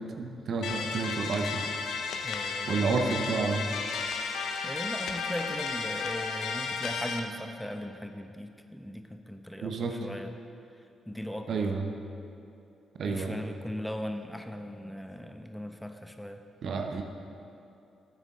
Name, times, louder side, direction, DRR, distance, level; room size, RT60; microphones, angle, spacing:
voice 1, 0.0-1.6 2.7-3.7 9.6-10.0 11.5-11.9 13.0-13.4 16.6-17.0, right 4 dB, 60° right, 4 dB, 0.9 m, -30 dB
sound 1, 0.6-7.2, left 5 dB, 65° left, 0.6 m, -33 dB
voice 2, 2.2-3.0 4.6-10.4 11.1-11.7 13.0-16.4, equal, 5° left, 6 dB, 0.8 m, -38 dB
12.5 x 9.2 x 3.8 m, 2.6 s
hypercardioid pair, 40°, 0 cm